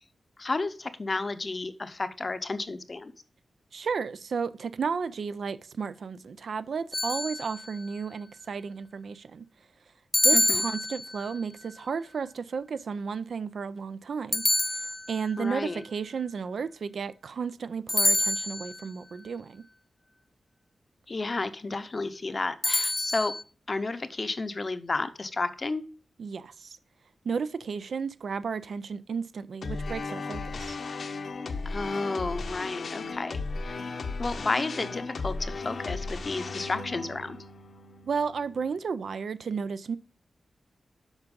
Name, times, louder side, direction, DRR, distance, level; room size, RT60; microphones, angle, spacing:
voice 1, 0.4-3.1 10.3-10.6 15.4-15.8 21.1-23.3 23.7-25.8 31.7-33.8 34.2-37.4, left 3 dB, 35° left, 0.7 m, -32 dB
voice 2, 3.7-9.5 10.2-14.4 15.1-19.6 26.2-26.8 27.2-30.8 38.0-40.0, right 5 dB, 70° right, 0.4 m, -33 dB
sound 1, 6.9-7.8 10.1-11.4 14.3-15.4 17.9-18.9 22.6-23.4, left 1 dB, 15° left, 0.3 m, -27 dB
sound 2, 29.6-38.8, left 3 dB, 60° left, 0.8 m, -36 dB
8.0 x 5.8 x 5.3 m
wide cardioid pair, 145°, 0 cm